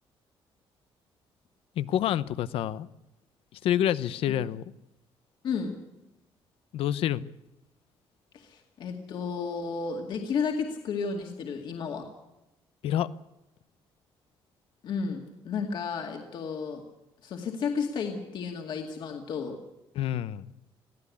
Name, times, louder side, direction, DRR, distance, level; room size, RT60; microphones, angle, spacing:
voice 1, 1.8-2.9 3.5-4.6 6.7-7.2 12.8-13.1 19.9-20.5, left 11 dB, 90° left, 16 dB, 0.8 m, -28 dB
voice 2, 5.4-5.8 8.3-12.1 14.8-16.8 17.2-19.5, left 5 dB, 55° left, 2 dB, 2.3 m, -32 dB
23.0 x 15.5 x 8.5 m, 0.95 s
cardioid pair, 175°, 9 cm